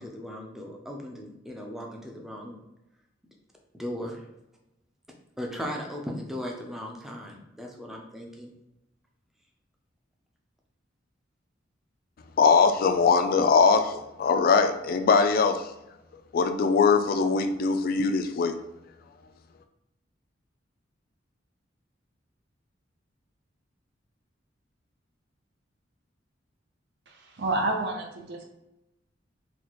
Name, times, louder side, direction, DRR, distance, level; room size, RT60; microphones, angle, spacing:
voice 1, 0.0-2.6 3.7-4.2 5.4-8.5, equal, ahead, 0 dB, 0.5 m, -37 dB
voice 2, 12.4-15.6 16.3-18.6, left 5 dB, 50° left, 8 dB, 0.3 m, -21 dB
voice 3, 27.1-28.4, right 2 dB, 65° right, 2 dB, 0.6 m, -29 dB
4.1 x 2.3 x 3.0 m, 0.90 s
head